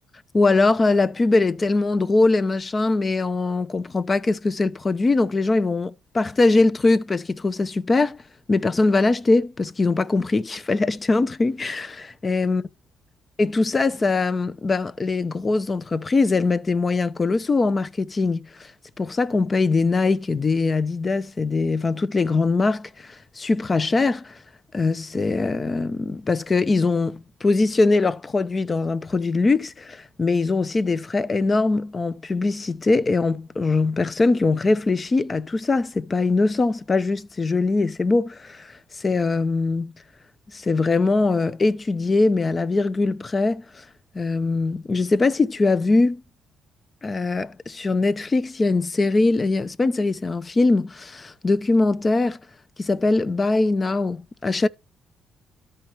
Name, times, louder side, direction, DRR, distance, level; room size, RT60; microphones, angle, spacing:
voice 1, 0.3-8.2 8.5-12.6 13.4-18.7 19.0-24.4 24.7-39.9 40.5-43.8 44.1-46.2 47.0-52.4 52.8-54.7, left 3 dB, 30° left, 0.6 m, -22 dB
13.0 x 4.4 x 3.0 m
cardioid pair, 90°, 0 cm